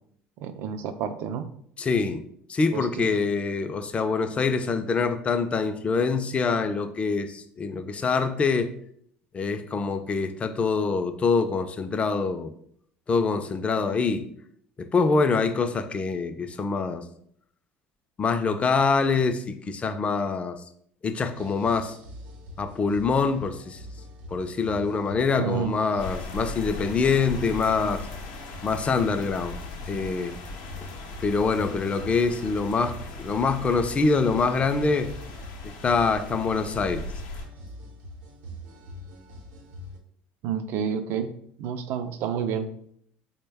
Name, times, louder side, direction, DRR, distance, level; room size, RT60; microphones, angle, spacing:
voice 1, 0.4-1.4 2.7-3.1 25.4-25.8 40.4-41.3 41.6-42.7, right 7 dB, 65° right, 0.4 m, -29 dB
voice 2, 1.8-2.2 2.5-8.7 9.3-12.5 13.1-14.2 14.8-17.0 18.2-20.6 21.0-22.0 22.6-23.8 24.3-28.0 28.6-29.6 29.9-30.4 30.8-30.9 31.2-35.1 35.6-37.0, left 4 dB, 30° left, 0.4 m, -25 dB
sound 1, 21.3-40.0, left 1 dB, 90° right, 0.7 m, -43 dB
sound 2, 26.0-37.5, left 2 dB, 80° left, 0.6 m, -39 dB
3.9 x 2.1 x 3.4 m
supercardioid pair, 90°, 4 cm